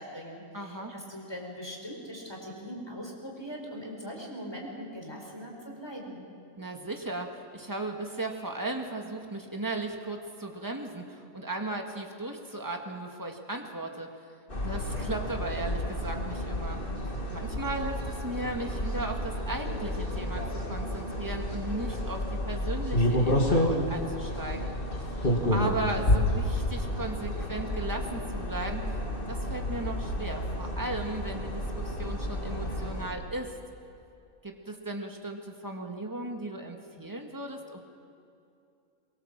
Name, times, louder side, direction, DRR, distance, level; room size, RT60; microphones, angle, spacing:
voice 1, 0.0-6.3, equal, 15° left, 0 dB, 4.6 m, -41 dB
voice 2, 0.5-0.9 6.6-14.1 14.6-16.8 17.3-24.7 25.5-28.8 29.3-33.5 34.4-37.8, right 2 dB, 15° right, 3 dB, 2.0 m, -36 dB
sound 1, 14.5-33.1, left 1 dB, 35° left, 2.8 m, -30 dB
23.5 x 23.0 x 7.6 m, 2.6 s
omnidirectional pair, 1.5 m